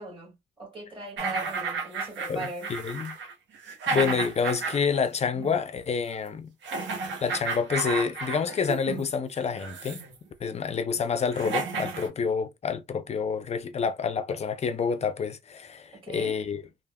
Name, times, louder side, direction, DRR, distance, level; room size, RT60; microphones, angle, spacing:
voice 1, 0.0-2.7 15.9-16.4, right 3 dB, 25° right, 1.7 m, -39 dB
sound 1, 1.2-5.0 5.3-5.5 6.6-9.1 9.5-10.1 10.9-11.0 11.3-12.1, right 4 dB, 65° right, 0.9 m, -32 dB
voice 2, 2.3-3.2 3.9-6.5 7.2-10.0 10.4-16.6, left 6 dB, 35° left, 0.5 m, -28 dB
3.4 x 2.0 x 2.2 m
cardioid pair, 90°, 20 cm